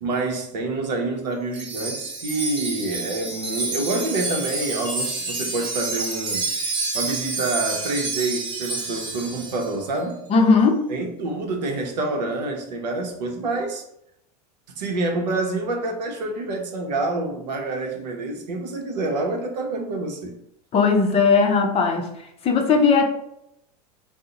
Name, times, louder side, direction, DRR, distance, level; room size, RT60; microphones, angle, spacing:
voice 1, 0.0-6.4 6.9-10.2 10.9-13.8 14.8-20.3, right 2 dB, 90° right, 2 dB, 0.7 m, -27 dB
Wind chime, 1.5-9.7, right 3 dB, 25° right, 0.8 m, -29 dB
voice 2, 10.3-10.8 20.7-22.1 22.4-23.1, left 4 dB, 30° left, 4 dB, 0.5 m, -17 dB
2.7 x 2.0 x 3.7 m, 0.78 s
hypercardioid pair, 105°, 21 cm